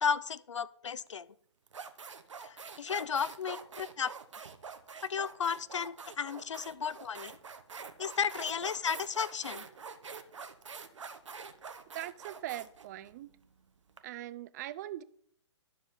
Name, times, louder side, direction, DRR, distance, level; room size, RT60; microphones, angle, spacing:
voice 1, 0.0-1.3 2.4-4.1 5.0-7.3 8.0-9.6, left 7 dB, 80° left, 0.6 m, -34 dB
sound 1, 1.1-1.2 1.7-14.0, right 5 dB, 80° right, 1.0 m, -46 dB
voice 2, 11.9-13.3 14.0-15.0, right 14 dB, 35° right, 0.5 m, -41 dB
12.0 x 7.3 x 3.9 m
hypercardioid pair, 135°, 15 cm